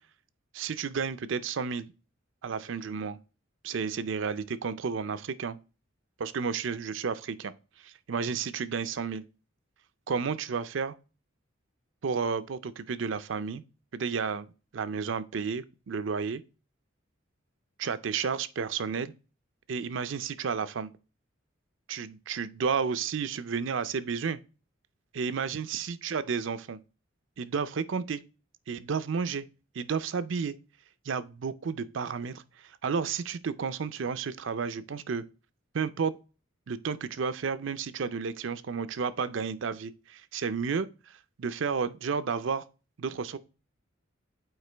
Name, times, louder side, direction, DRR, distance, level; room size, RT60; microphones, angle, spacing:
voice 1, 0.5-1.9 2.4-3.2 3.6-5.6 6.2-7.5 7.8-9.2 10.1-11.0 12.0-13.6 13.9-14.5 14.7-16.4 17.8-19.1 19.7-20.9 21.9-24.4 25.1-26.8 27.4-28.2 28.7-29.5 29.7-30.5 31.1-35.2 35.7-36.1 36.7-42.7 43.0-43.4, right 5 dB, 65° right, 0.5 m, -32 dB
8.0 x 4.4 x 3.3 m
head